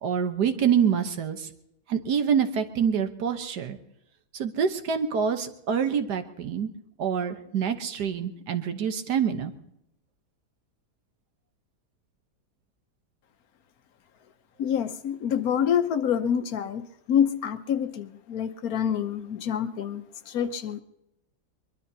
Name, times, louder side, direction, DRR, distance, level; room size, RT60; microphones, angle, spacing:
voice 1, 0.0-1.5 1.9-3.8 4.3-6.7 7.0-9.5, right 7 dB, 80° right, 8 dB, 1.6 m, -26 dB
voice 2, 14.6-20.8, left 8 dB, 65° left, 9 dB, 1.2 m, -27 dB
23.0 x 22.0 x 2.8 m, 0.83 s
omnidirectional pair, 1.7 m